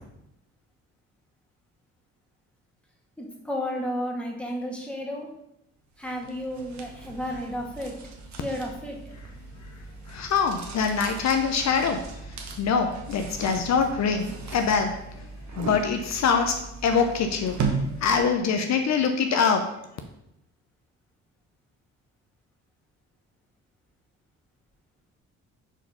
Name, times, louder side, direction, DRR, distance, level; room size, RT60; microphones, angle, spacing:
voice 1, 3.2-5.3 6.0-7.9 8.3-9.0, equal, 5° left, -1 dB, 1.7 m, -32 dB
sound 1, 6.0-18.4, right 4 dB, 70° right, 1.2 m, -37 dB
voice 2, 9.6-16.5 16.8-19.9, left 5 dB, 65° left, 5 dB, 0.8 m, -25 dB
5.0 x 4.3 x 5.5 m, 0.81 s
cardioid pair, 90°, 30 cm